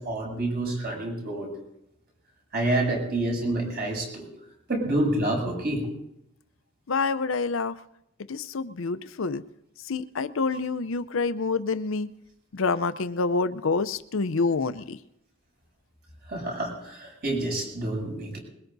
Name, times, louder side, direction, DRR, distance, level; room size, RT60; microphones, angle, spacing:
voice 1, 0.0-1.5 2.5-4.3 4.7-5.9 16.3-18.4, right 1 dB, 50° right, -1 dB, 7.4 m, -28 dB
voice 2, 6.9-7.8 8.3-9.4 9.9-12.1 12.5-15.0, left 4 dB, 75° left, 12 dB, 0.6 m, -27 dB
22.0 x 21.0 x 2.7 m, 0.79 s
head